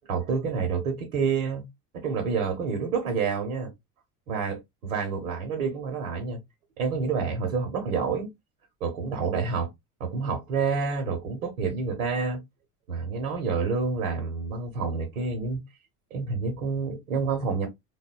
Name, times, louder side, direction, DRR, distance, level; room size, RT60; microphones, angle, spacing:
voice 1, 0.1-1.6 1.9-3.7 4.3-6.4 6.8-8.3 8.8-9.7 10.0-12.4 12.9-15.6 16.1-17.7, right 5 dB, 70° right, 1.0 m, -28 dB
3.4 x 2.1 x 2.4 m
figure-of-eight pair, 65°, 43 cm